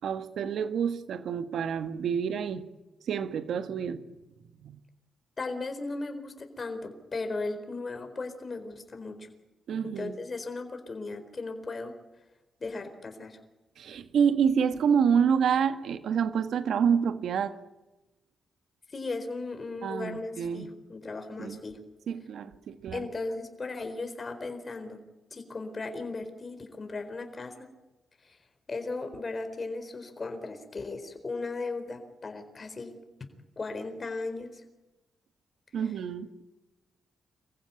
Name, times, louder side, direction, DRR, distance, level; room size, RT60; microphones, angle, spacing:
voice 1, 0.0-2.7 3.1-4.0 4.6-4.8 9.7-10.1 13.8-17.5 19.8-20.7 21.4-21.6 22.1-23.1 35.7-36.4, right 7 dB, 75° right, 10 dB, 1.6 m, -28 dB
voice 2, 5.4-9.2 9.8-11.9 12.6-13.4 18.9-21.8 22.9-25.0 25.3-27.7 28.2-28.4 28.7-33.0 33.6-34.6 35.8-35.9, left 3 dB, 40° left, 7 dB, 4.2 m, -36 dB
25.0 x 15.5 x 9.6 m, 1.1 s
supercardioid pair, 55°, 0 cm